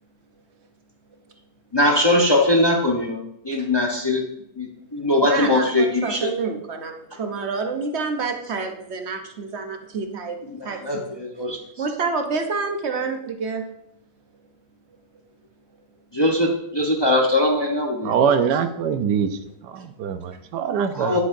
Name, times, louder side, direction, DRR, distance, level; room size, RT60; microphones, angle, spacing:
voice 1, 1.7-4.2 4.6-6.3 10.5-11.6 16.1-18.3 20.9-21.2, left 1 dB, 20° left, 0 dB, 0.8 m, -21 dB
voice 2, 5.2-10.4 10.6-11.4 11.8-13.6 19.3-19.5 20.3-20.4 20.7-21.0, right 4 dB, 50° right, 5 dB, 1.0 m, -28 dB
voice 3, 18.0-19.3 19.7-21.2, right 7 dB, 90° right, 10 dB, 1.3 m, -22 dB
9.7 x 8.3 x 2.6 m, 0.77 s
omnidirectional pair, 1.7 m